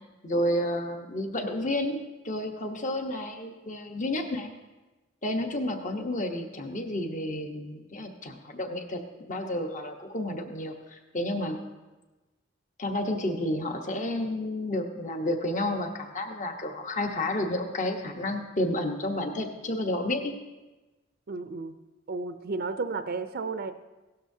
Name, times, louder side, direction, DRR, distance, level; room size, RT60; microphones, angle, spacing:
voice 1, 0.2-4.5 5.2-9.0 9.3-11.6 12.8-20.3, left 1 dB, 40° left, 4 dB, 1.1 m, -31 dB
voice 2, 21.3-21.7 22.1-23.7, right 4 dB, 55° right, 9 dB, 0.5 m, -33 dB
16.5 x 12.5 x 2.7 m, 1.1 s
head